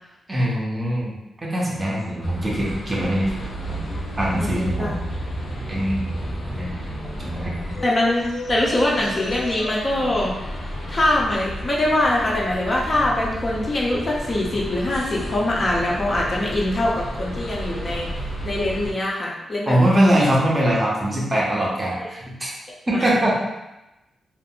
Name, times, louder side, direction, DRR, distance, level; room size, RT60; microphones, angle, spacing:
voice 1, 0.3-3.3 3.7-3.8 4.2-4.9 5.7-6.1 6.5-6.8 7.2-7.5 19.7-22.5 22.9-23.3, right 1 dB, 20° right, -4 dB, 0.5 m, -22 dB
sound 1, 2.2-18.9, equal, 65° left, 0.7 m, -32 dB
voice 2, 4.4-4.9 7.8-10.3 10.9-18.1 18.4-19.8 20.2-20.3 22.0-22.1 22.9-23.1, left 1 dB, 30° left, -4 dB, 0.4 m, -23 dB
2.4 x 2.0 x 3.5 m, 0.97 s
wide cardioid pair, 160°, 0 cm